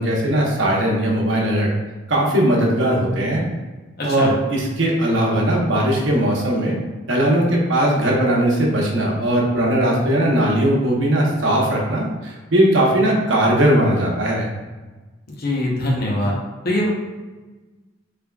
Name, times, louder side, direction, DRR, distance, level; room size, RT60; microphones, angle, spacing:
voice 1, 0.0-1.7 2.1-3.5 4.0-6.8 7.1-14.5, right 1 dB, 70° right, -2 dB, 0.8 m, -19 dB
voice 2, 4.0-4.3 15.4-16.3 16.6-16.9, left 1 dB, 50° left, -2 dB, 0.8 m, -22 dB
3.5 x 3.3 x 2.3 m, 1.2 s
head